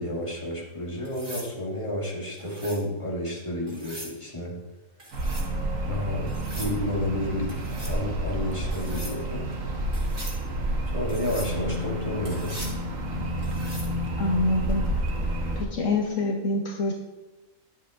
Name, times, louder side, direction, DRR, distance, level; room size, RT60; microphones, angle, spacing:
voice 1, 0.0-4.6 5.8-7.6 7.8-9.5 10.9-12.6, left 1 dB, 25° left, -5 dB, 2.2 m, -31 dB
sound 1, 1.0-1.5 2.4-2.8 3.7-4.2 5.0-5.5 6.3-6.7 7.5-8.0 8.7-9.2 9.9-10.4 11.1-11.5 12.2-12.8 13.4-13.9 15.8-16.1, right 1 dB, 55° right, 3.3 m, -41 dB
sound 2, 5.1-15.6, right 1 dB, 75° right, 1.5 m, -30 dB
voice 2, 14.2-14.8 15.6-16.9, left 2 dB, 70° left, 1 dB, 1.2 m, -25 dB
11.5 x 7.9 x 2.5 m, 1.1 s
omnidirectional pair, 1.4 m